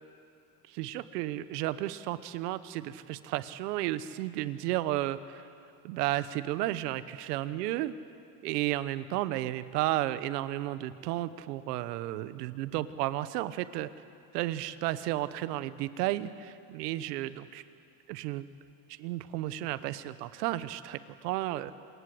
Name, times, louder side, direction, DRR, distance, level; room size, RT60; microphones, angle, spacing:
voice 1, 0.7-5.5 5.8-7.9 8.4-13.9 14.3-17.6 18.1-18.4 18.9-21.7, right 15 dB, 85° right, 14 dB, 1.2 m, -33 dB
27.0 x 21.0 x 7.9 m, 2.5 s
supercardioid pair, 115°, 46 cm